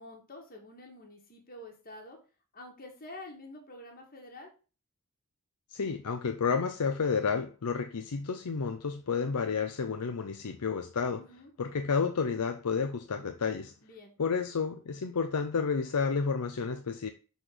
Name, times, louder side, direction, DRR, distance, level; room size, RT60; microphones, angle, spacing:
voice 1, 0.0-2.2 2.5-4.5 11.2-11.5 13.8-14.1, left 1 dB, 40° left, 1.6 m, -48 dB
voice 2, 5.7-11.2 11.6-13.7 14.2-17.1, left 5 dB, 85° left, 0.6 m, -31 dB
6.2 x 4.0 x 5.0 m
head